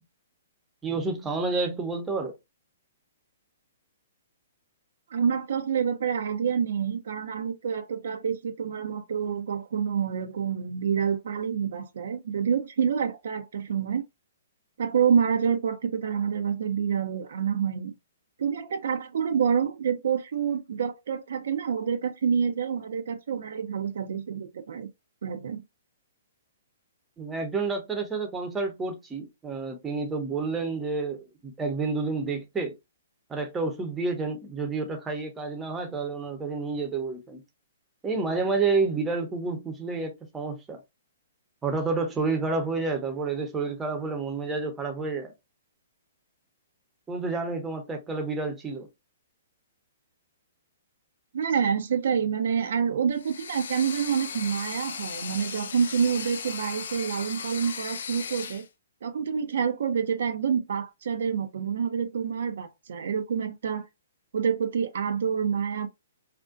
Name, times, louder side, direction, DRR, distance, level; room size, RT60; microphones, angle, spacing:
voice 1, 0.8-2.4 27.2-32.8 33.3-37.4 38.0-40.8 41.6-45.3 47.1-48.9, right 4 dB, 15° right, 0.7 m, -29 dB
voice 2, 5.1-14.0 14.8-18.0 18.4-24.9 25.2-25.6 51.3-58.7 59.0-63.9 64.3-65.9, right 7 dB, 70° right, 0.4 m, -27 dB
sound 1, 53.1-58.7, left 6 dB, 70° left, 0.3 m, -37 dB
2.5 x 2.1 x 2.4 m
hypercardioid pair, 130°, 0 cm